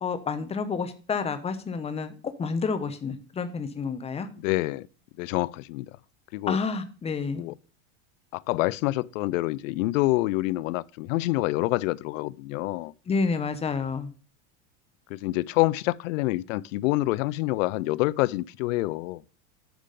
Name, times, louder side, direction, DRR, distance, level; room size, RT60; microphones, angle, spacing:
voice 1, 0.0-4.3 6.5-7.5 13.1-14.1, left 5 dB, 15° left, 0.8 m, -29 dB
voice 2, 4.4-4.9 5.2-5.9 6.3-6.6 7.3-7.5 8.3-12.9 15.1-19.2, left 19 dB, 80° left, 0.5 m, -27 dB
10.5 x 3.8 x 6.5 m
supercardioid pair, 145°, 39 cm